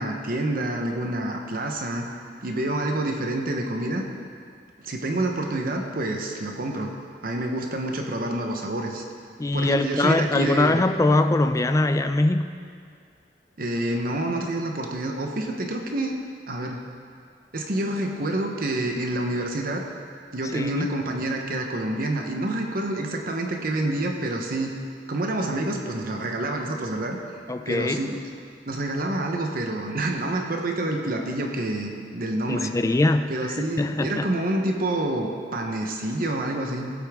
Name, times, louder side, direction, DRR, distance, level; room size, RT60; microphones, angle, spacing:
voice 1, 0.0-2.1 2.4-4.0 4.8-6.9 7.2-9.0 9.5-10.8 13.6-16.1 16.5-16.8 17.5-19.8 20.3-24.8 25.1-27.2 27.7-28.2 28.7-32.8 33.3-36.9, right 1 dB, 55° right, 3 dB, 0.9 m, -28 dB
voice 2, 9.4-12.5 20.5-20.9 27.5-28.0 32.5-33.3 33.8-34.3, left 2 dB, 20° left, 8 dB, 0.4 m, -22 dB
16.5 x 8.5 x 3.6 m, 2.2 s
head